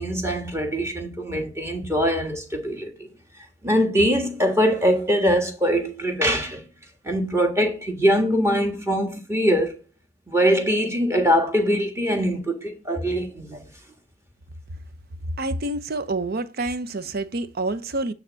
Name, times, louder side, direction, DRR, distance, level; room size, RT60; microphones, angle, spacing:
voice 1, 0.0-3.1 3.6-6.6 7.0-9.8 10.3-13.6, equal, 15° right, 1.5 m, -22 dB
voice 2, 15.4-18.1, right 2 dB, 50° right, 0.7 m, -27 dB
9.2 x 3.6 x 6.9 m
head